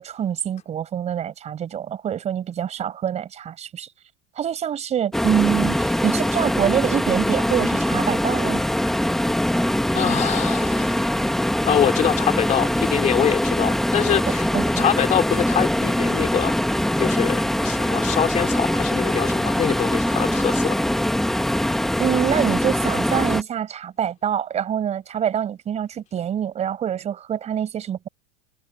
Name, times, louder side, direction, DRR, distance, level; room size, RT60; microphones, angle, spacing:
voice 1, 0.0-3.9 4.4-8.6 14.3-14.9 22.0-28.1, right 9 dB, 20° right, 5.0 m, -25 dB
sound 1, 5.1-23.4, left 1 dB, ahead, 0.9 m, -22 dB
voice 2, 9.9-11.3 11.6-14.5 14.8-20.8, left 9 dB, 20° left, 3.8 m, -24 dB
supercardioid pair, 170°, 34 cm